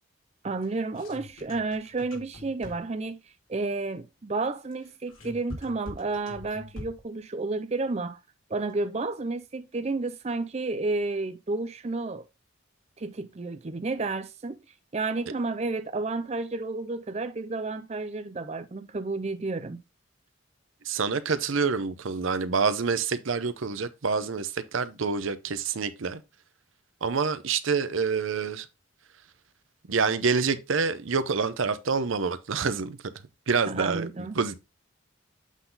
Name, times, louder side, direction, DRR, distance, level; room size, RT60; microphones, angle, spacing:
voice 1, 0.4-3.2 3.5-8.2 8.5-12.3 13.0-14.6 14.9-19.8 33.7-34.3, right 3 dB, 30° right, 0.4 m, -31 dB
sound 1, 0.6-3.1 4.7-7.2, left 2 dB, 80° left, 2.6 m, -43 dB
voice 2, 20.8-26.2 27.0-28.7 29.9-33.1 33.5-34.1 34.3-34.6, right 5 dB, 75° right, 0.7 m, -27 dB
8.2 x 3.9 x 3.9 m
head